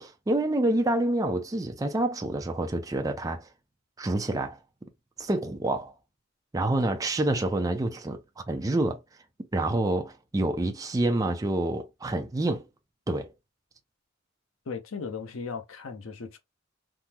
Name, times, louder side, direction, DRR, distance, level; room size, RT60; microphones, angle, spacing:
voice 1, 0.0-3.5 4.0-4.6 5.2-5.9 6.5-8.2 8.5-9.0 9.5-12.7 13.1-13.3, right 1 dB, 15° right, 0.4 m, -27 dB
voice 2, 14.7-16.4, left 5 dB, 80° left, 0.6 m, -37 dB
3.5 x 2.0 x 2.8 m
head